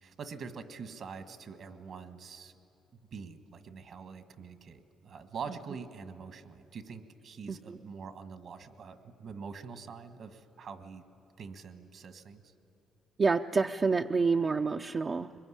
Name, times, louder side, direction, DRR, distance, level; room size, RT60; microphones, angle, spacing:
voice 1, 0.0-2.5 3.1-11.0 11.4-12.4 15.3-15.4, right 5 dB, 60° right, 10 dB, 1.5 m, -45 dB
voice 2, 7.5-7.8 13.2-15.3, right 4 dB, 40° right, 4 dB, 0.5 m, -28 dB
22.5 x 21.5 x 10.0 m, 2.9 s
cardioid pair, 90°, 0 cm